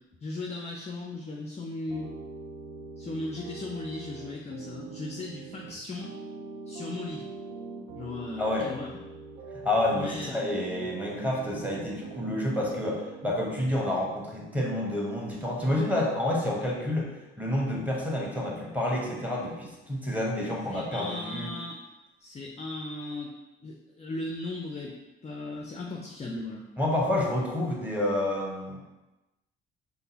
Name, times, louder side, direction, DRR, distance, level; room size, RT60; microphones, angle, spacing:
voice 1, 0.2-2.1 3.0-6.1 6.7-7.3 8.0-8.9 9.9-10.9 20.7-21.8 22.2-23.3 23.6-24.9 25.2-26.6, left 2 dB, 20° left, -1 dB, 0.4 m, -37 dB
sound 1, 1.9-13.7, right 5 dB, 70° right, 0.6 m, -43 dB
voice 2, 8.4-8.7 9.5-17.1 17.4-21.5 26.8-28.8, left 1 dB, 5° right, -3 dB, 1.1 m, -29 dB
5.1 x 2.0 x 2.8 m, 1.0 s
figure-of-eight pair, 45°, 33 cm